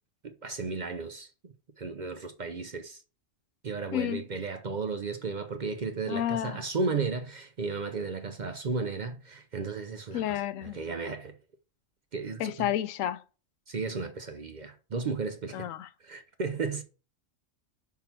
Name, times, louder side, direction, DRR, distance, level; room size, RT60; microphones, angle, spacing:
voice 1, 0.2-1.3 1.8-3.0 3.6-11.3 12.1-12.7 13.7-15.7 16.0-16.8, right 4 dB, 45° right, 0.6 m, -34 dB
voice 2, 3.9-4.2 6.1-6.6 10.1-10.8 12.4-13.2 15.5-15.9, left 11 dB, 90° left, 1.0 m, -30 dB
5.8 x 3.7 x 5.8 m
omnidirectional pair, 1.3 m